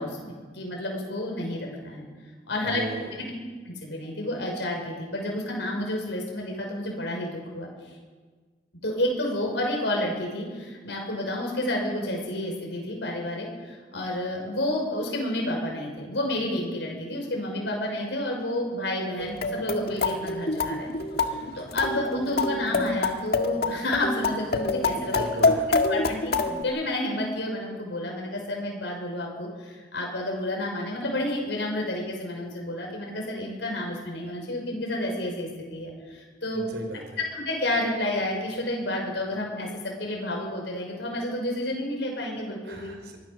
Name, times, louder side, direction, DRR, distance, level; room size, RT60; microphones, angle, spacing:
voice 1, 0.0-2.0 2.5-2.8 3.2-3.3 3.7-8.0 8.8-20.9 21.2-25.5 25.9-36.7 37.3-42.9, left 1 dB, 85° left, 0 dB, 6.0 m, -30 dB
voice 2, 2.6-3.2 25.0-25.7 36.5-37.2 42.6-43.2, right 1 dB, 70° right, 4 dB, 5.1 m, -37 dB
sound 1, 19.2-26.6, left 3 dB, 60° left, 1.8 m, -26 dB
25.0 x 18.5 x 6.9 m, 1.4 s
head